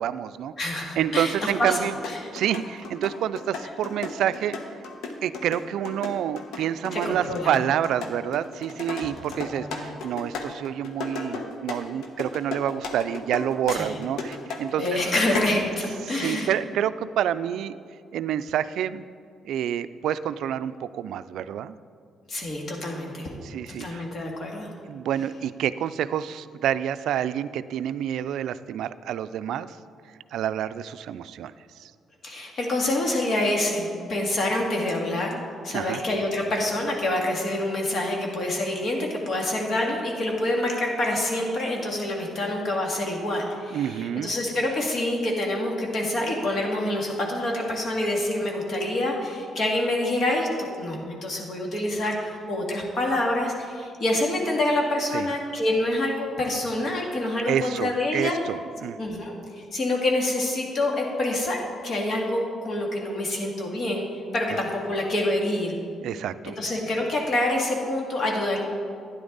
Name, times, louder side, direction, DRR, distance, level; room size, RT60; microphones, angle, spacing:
voice 1, 0.0-0.5 1.0-2.0 2.3-4.6 5.2-14.8 16.1-17.8 18.1-19.0 19.4-21.8 23.4-24.0 24.9-29.8 30.3-31.5 31.8-31.9 35.7-36.0 43.7-44.3 55.1-55.3 57.5-59.0 64.5-64.6 66.0-66.5, right 10 dB, 80° right, 14 dB, 0.3 m, -28 dB
voice 2, 0.6-1.8 6.9-7.5 9.0-9.8 13.7-14.0 14.8-16.5 22.3-23.3 23.7-24.7 32.2-58.4 59.0-59.3 59.7-64.1 64.3-65.8 66.4-68.6, left 1 dB, 50° left, 0 dB, 2.2 m, -27 dB
sound 1, 1.8-15.6, left 3 dB, 85° left, 1.1 m, -35 dB
12.0 x 9.7 x 4.0 m, 2.2 s
cardioid pair, 90°, 0 cm